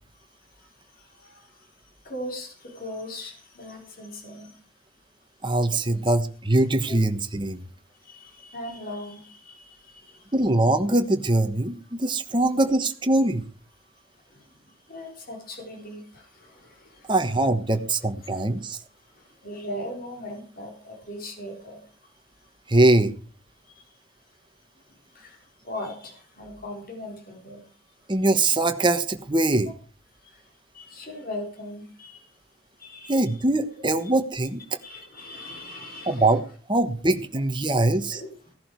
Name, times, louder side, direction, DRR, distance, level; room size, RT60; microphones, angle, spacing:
voice 1, 0.2-4.6 6.9-7.0 8.0-10.3 14.2-17.5 18.2-18.4 19.0-22.5 23.6-24.0 24.9-27.7 30.1-32.4 32.8-33.4 34.7-36.4 38.1-38.5, left 1 dB, 45° left, 1 dB, 3.9 m, -40 dB
voice 2, 5.4-7.6 10.3-13.4 17.1-18.8 22.7-23.1 28.1-29.7 33.1-34.6 36.1-36.4 36.7-38.2, right 2 dB, 20° right, 7 dB, 1.2 m, -22 dB
16.5 x 11.0 x 4.6 m, 0.40 s
head